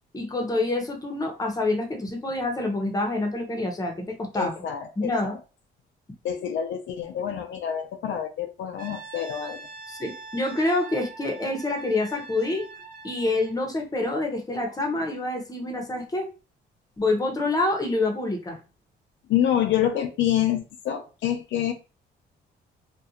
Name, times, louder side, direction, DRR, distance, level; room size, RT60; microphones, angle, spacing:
voice 1, 0.1-4.5 5.0-5.4 9.9-12.7 13.0-16.3 17.0-18.6, left 2 dB, 20° left, 0.7 m, -27 dB
voice 2, 4.3-5.4 6.2-9.7 19.3-21.7, left 10 dB, 70° left, 0.4 m, -27 dB
Brass instrument, 8.8-13.6, right 4 dB, 45° right, 0.8 m, -43 dB
2.4 x 2.2 x 2.7 m
cardioid pair, 90°, 20 cm